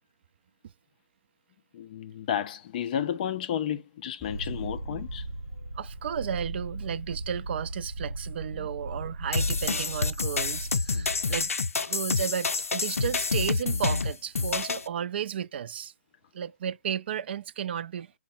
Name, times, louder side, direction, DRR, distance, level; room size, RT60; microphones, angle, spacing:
voice 1, 1.7-5.3 8.6-8.7, left 9 dB, 35° left, 0.5 m, -32 dB
sound 1, 4.2-6.4 6.7-6.8, left 3 dB, ahead, 0.6 m, -50 dB
Purr, 4.2-11.2, right 2 dB, 80° right, 1.0 m, -37 dB
voice 2, 5.7-11.5 11.9-15.9 16.3-18.1, right 8 dB, 50° right, 0.4 m, -33 dB
sound 2, 9.3-14.9, left 4 dB, 85° left, 0.5 m, -28 dB
5.3 x 2.1 x 4.3 m
figure-of-eight pair, 140°, 7 cm